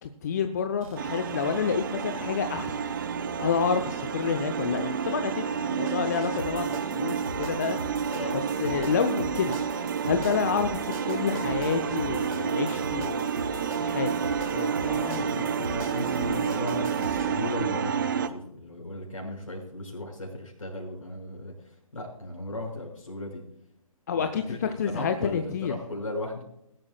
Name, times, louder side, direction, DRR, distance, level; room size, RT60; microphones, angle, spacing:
voice 1, 0.0-2.8 3.4-7.8 8.3-9.6 10.0-13.3 13.8-14.2 14.5-15.7 24.1-25.7, left 6 dB, 30° left, 8 dB, 0.7 m, -29 dB
sound 1, 0.8-17.6, right 2 dB, 65° right, 3.0 m, -42 dB
sound 2, 1.0-18.3, right 7 dB, 35° right, 0.7 m, -30 dB
sound 3, 11.0-17.1, right 4 dB, 50° right, 5.1 m, -44 dB
voice 2, 14.8-23.4 24.1-24.6 24.8-26.4, left 2 dB, 60° left, 1 dB, 5.9 m, -36 dB
21.0 x 12.0 x 2.3 m, 0.79 s
figure-of-eight pair, 140°, 19 cm